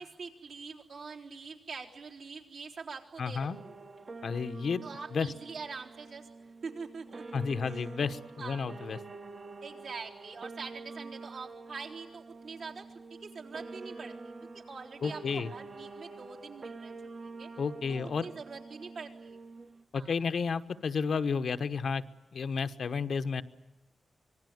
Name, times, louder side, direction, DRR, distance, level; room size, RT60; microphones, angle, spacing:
voice 1, 0.0-3.7 4.8-6.3 6.6-7.4 7.7-7.9 8.4-8.6 9.6-14.1 14.5-16.9 17.4-17.5 17.9-19.4 19.9-20.1, right 5 dB, 75° right, -1 dB, 3.8 m, -44 dB
voice 2, 3.2-3.6 4.2-4.8 5.1-5.3 7.3-9.0 15.0-15.5 17.6-18.3 19.9-22.0 22.3-23.4, left 5 dB, 70° left, 10 dB, 1.1 m, -31 dB
sound 1, 3.5-19.8, right 3 dB, 45° right, 1.1 m, -47 dB
26.0 x 20.0 x 9.5 m, 1.0 s
wide cardioid pair, 105°, 0 cm